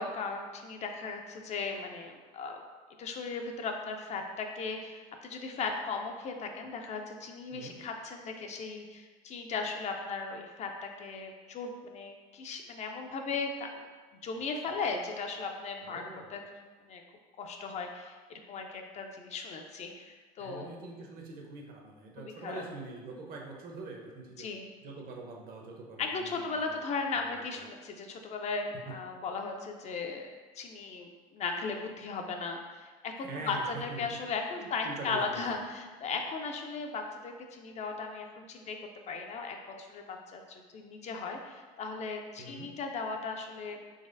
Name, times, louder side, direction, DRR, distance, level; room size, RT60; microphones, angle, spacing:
voice 1, 0.0-2.6 3.0-13.8 14.2-16.6 16.9-17.0 17.4-20.7 22.2-22.6 24.4-24.7 26.0-30.3 30.6-38.8 39.1-43.8, left 4 dB, 40° left, 4 dB, 0.4 m, -37 dB
voice 2, 7.5-7.8 15.8-16.3 20.4-24.5 24.8-26.8 27.2-27.3 28.9-29.0 33.2-34.1 34.6-35.4 42.4-42.7, right 3 dB, 50° right, 0 dB, 0.7 m, -44 dB
3.9 x 3.1 x 2.5 m, 1.4 s
supercardioid pair, 105°, 19 cm